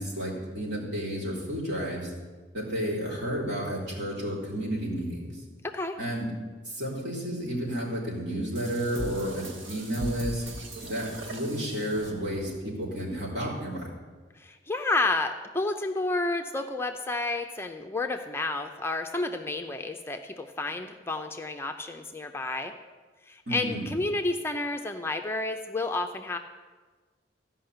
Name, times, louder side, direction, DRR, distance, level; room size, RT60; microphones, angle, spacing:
voice 1, 0.0-2.1 2.5-5.4 6.0-6.3 6.7-10.4 10.9-13.9 23.5-23.9, equal, 65° right, -4 dB, 3.6 m, -31 dB
voice 2, 5.6-6.0 14.4-22.7 23.3-26.4, left 2 dB, 15° left, 5 dB, 0.5 m, -30 dB
sound 1, 8.5-12.7, right 1 dB, 85° right, 1.6 m, -40 dB
14.5 x 5.6 x 7.8 m, 1.4 s
head